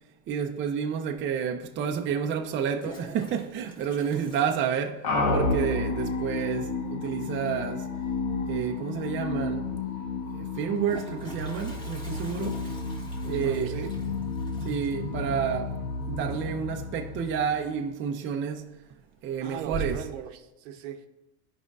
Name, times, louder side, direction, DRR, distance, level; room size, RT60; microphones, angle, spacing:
voice 1, 0.3-7.9 8.5-9.7 10.3-12.7 13.3-13.9 14.6-15.8 16.1-18.7 19.2-20.0, right 7 dB, 30° right, 0.6 m, -30 dB
Toilet flush, 2.5-5.3 5.6-5.7 5.9-6.0 6.3-6.7 8.4-8.5 8.9-9.0 10.5-17.2 17.5-17.9 18.4-18.9 19.3-20.3, right 2 dB, 10° left, 1.3 m, -43 dB
sound 1, 5.0-17.9, left 3 dB, 45° left, 1.2 m, -31 dB
voice 2, 13.2-13.9 19.4-21.0, right 9 dB, 70° right, 0.8 m, -39 dB
13.5 x 5.1 x 2.4 m
supercardioid pair, 120°, 40 cm